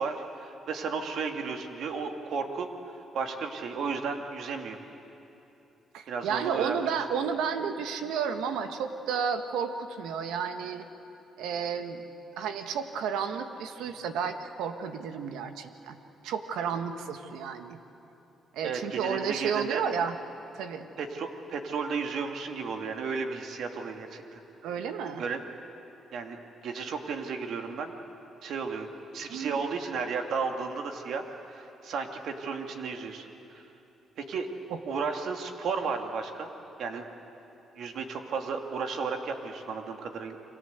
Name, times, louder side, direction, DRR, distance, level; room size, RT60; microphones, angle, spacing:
voice 1, 0.0-2.7 3.1-4.8 6.1-6.9 18.6-19.8 21.0-24.4 25.2-25.4 26.1-26.4 26.6-27.9 28.4-28.9 29.1-33.6 34.2-34.5 34.9-36.5 36.8-37.0 37.8-40.4, right 5 dB, 70° right, 4 dB, 2.5 m, -33 dB
voice 2, 5.9-10.9 11.4-12.1 12.4-16.0 16.2-17.8 18.5-20.2 20.5-20.9 24.6-25.2 29.3-29.6 34.7-34.8, right 7 dB, 90° right, 7 dB, 1.6 m, -32 dB
30.0 x 24.0 x 8.2 m, 2.9 s
cardioid pair, 90°, 0 cm